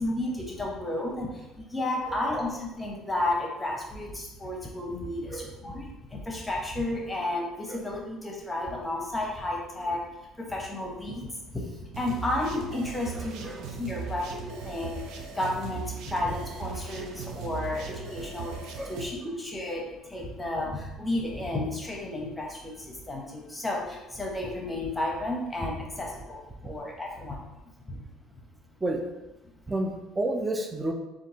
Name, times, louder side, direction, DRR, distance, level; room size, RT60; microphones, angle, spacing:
voice 1, 0.0-10.0 10.4-18.5 18.9-27.4 27.9-28.0, left 1 dB, 15° left, -1 dB, 1.0 m, -32 dB
voice 2, 2.1-2.4 5.3-5.5 7.7-7.8 13.1-13.6 18.8-19.0 28.8-29.0 29.7-30.9, right 2 dB, 15° right, 3 dB, 0.5 m, -31 dB
sound 1, 11.9-19.0, right 6 dB, 70° right, 0.5 m, -38 dB
6.9 x 2.5 x 2.9 m, 1.0 s
supercardioid pair, 100°, 0 cm